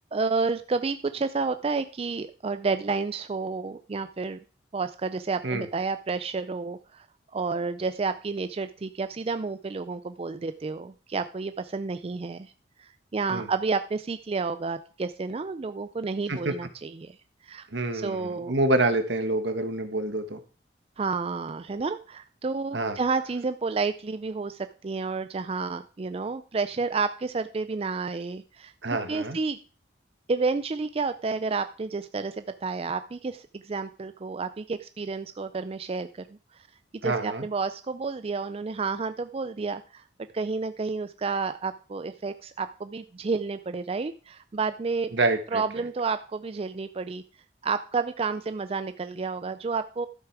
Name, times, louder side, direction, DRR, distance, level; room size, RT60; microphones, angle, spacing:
voice 1, 0.1-4.4 4.7-7.1 7.3-12.5 12.8-17.2 17.4-17.7 17.9-18.5 21.0-28.7 29.1-29.6 30.3-36.4 37.0-40.0 40.3-45.1 45.5-47.2 47.6-50.1, right 4 dB, 35° right, 11 dB, 0.4 m, -30 dB
voice 2, 17.7-20.4 22.7-23.0 28.8-29.4 37.0-37.4 45.1-45.6, right 2 dB, 75° right, 8 dB, 1.5 m, -27 dB
12.0 x 7.1 x 4.7 m, 0.37 s
head